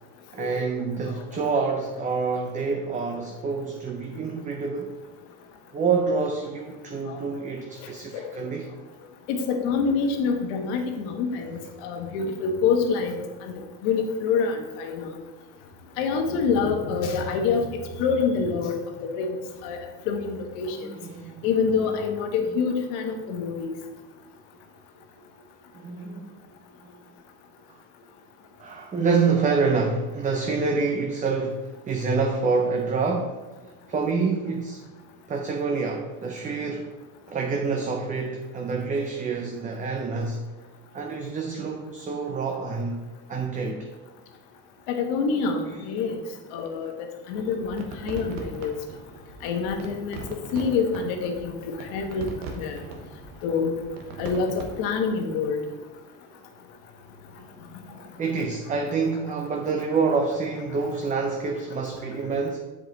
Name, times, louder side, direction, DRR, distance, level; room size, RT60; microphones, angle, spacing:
voice 1, 0.3-5.0 5.7-8.7 20.8-21.5 25.7-26.4 28.6-33.4 33.9-34.9 35.3-36.9 37.3-40.4 40.9-43.0 43.3-43.9 57.9-62.6, right 4 dB, 20° right, 3 dB, 0.5 m, -27 dB
voice 2, 9.3-13.5 13.8-15.1 16.0-17.6 18.0-19.8 20.1-20.9 21.4-23.7 44.9-46.2 46.5-46.9 47.3-48.7 49.4-50.2 50.5-52.3 52.6-52.8 53.4-53.8 54.2-55.6, left 5 dB, 80° left, 4 dB, 1.2 m, -26 dB
sound 1, 47.3-54.8, right 3 dB, 90° right, 1.2 m, -40 dB
7.7 x 4.9 x 3.9 m, 1.2 s
supercardioid pair, 120°, 36 cm